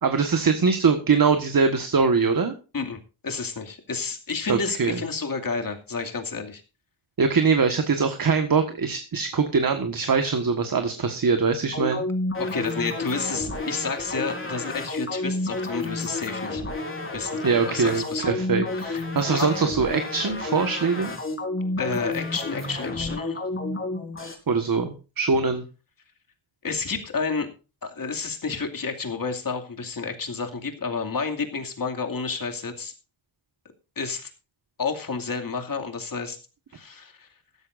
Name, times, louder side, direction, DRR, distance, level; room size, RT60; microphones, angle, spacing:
voice 1, 0.0-2.5 4.5-5.0 7.2-12.0 17.4-21.1 24.5-25.6, right 5 dB, 45° right, 7 dB, 1.6 m, -22 dB
voice 2, 3.2-6.6 12.4-16.6 17.1-17.4 17.7-18.4 18.8-19.0 19.3-19.5 21.8-23.4 26.6-27.5 27.8-32.9 34.0-34.3 34.8-36.4 36.7-37.3, left 4 dB, 45° left, 4 dB, 2.5 m, -30 dB
sound 1, 11.7-24.3, left 2 dB, 25° left, 4.2 m, -31 dB
15.5 x 13.5 x 2.6 m, 0.32 s
wide cardioid pair, 130°, 46 cm